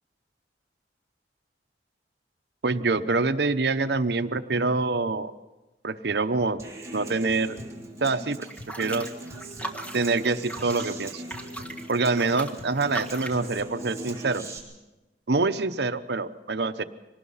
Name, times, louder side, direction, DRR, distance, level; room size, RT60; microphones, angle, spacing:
voice 1, 2.6-5.3 5.8-6.6 6.9-7.6 8.0-8.4 8.8-9.1 9.9-11.2 11.9-14.4 15.3-16.8, right 3 dB, 65° right, 10 dB, 0.9 m, -25 dB
Human voice / Acoustic guitar, 6.6-14.6, right 1 dB, 15° right, 3.5 m, -40 dB
sound 1, 8.4-13.4, right 1 dB, 10° left, 1.6 m, -39 dB
24.5 x 19.0 x 5.6 m, 1.1 s
head